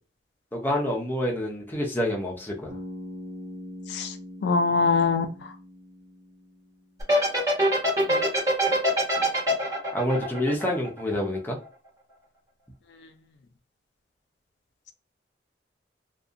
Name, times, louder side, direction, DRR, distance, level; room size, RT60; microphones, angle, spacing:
voice 1, 0.5-2.7 9.9-11.6, left 1 dB, 10° left, -1 dB, 0.5 m, -27 dB
Bass guitar, 2.7-6.8, left 1 dB, 70° right, 1.1 m, -42 dB
voice 2, 4.4-5.5 8.1-8.4, left 4 dB, 70° left, 7 dB, 0.3 m, -24 dB
sound 1, 7.0-11.4, right 1 dB, 20° right, 1.1 m, -23 dB
2.7 x 2.3 x 2.4 m, 0.34 s
head